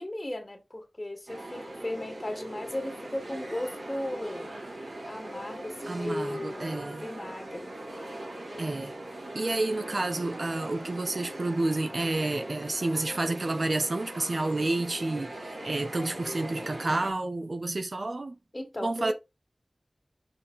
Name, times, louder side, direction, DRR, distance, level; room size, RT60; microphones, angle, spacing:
voice 1, 0.0-4.5 5.1-7.7 18.5-19.1, left 1 dB, 35° left, 2.3 m, -36 dB
sound 1, 1.3-17.1, right 1 dB, 85° right, 3.3 m, -40 dB
voice 2, 5.9-7.1 8.6-9.0 9.3-18.4 18.8-19.1, right 2 dB, 65° right, 0.9 m, -30 dB
6.3 x 4.9 x 4.0 m
wide cardioid pair, 65°, 0 cm